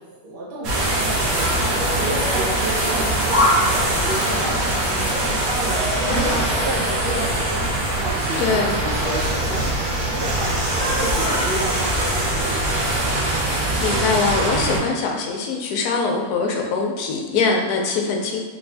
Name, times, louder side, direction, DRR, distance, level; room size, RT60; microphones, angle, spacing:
voice 1, 0.0-10.6 10.9-13.0, right 1 dB, 45° right, -5 dB, 0.8 m, -32 dB
sound 1, 0.6-14.8, right 1 dB, 65° right, 1.3 m, -22 dB
sound 2, 1.3-13.0, left 1 dB, 25° left, 0.9 m, -28 dB
voice 2, 8.4-8.8 13.4-18.4, left 4 dB, 90° left, 1 dB, 1.2 m, -23 dB
3.7 x 2.6 x 3.3 m, 1.4 s
omnidirectional pair, 1.6 m